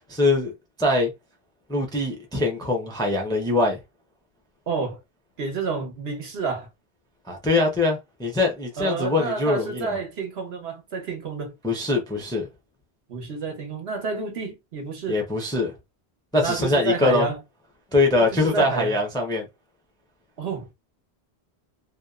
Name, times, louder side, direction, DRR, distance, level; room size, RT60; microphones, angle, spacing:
voice 1, 0.1-0.5 0.8-1.1 1.7-3.8 7.3-9.9 11.6-12.5 15.1-15.7 16.3-17.3 17.9-19.4, left 2 dB, 5° left, 0.4 m, -22 dB
voice 2, 4.7-5.0 5.4-6.7 8.8-11.5 13.1-15.2 16.4-17.4 18.2-18.9 20.4-20.7, right 4 dB, 70° right, 1.1 m, -29 dB
2.8 x 2.0 x 2.3 m
omnidirectional pair, 1.1 m